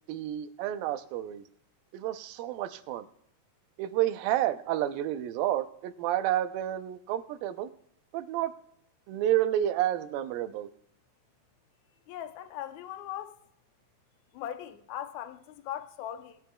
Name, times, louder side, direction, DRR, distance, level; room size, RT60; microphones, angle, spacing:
voice 1, 0.1-1.4 1.9-3.1 3.8-7.7 8.1-8.5 9.1-10.7, right 12 dB, 85° right, 2.5 m, -30 dB
voice 2, 12.1-13.4 14.3-16.4, left 11 dB, 75° left, 1.8 m, -39 dB
20.5 x 10.5 x 2.3 m
omnidirectional pair, 4.0 m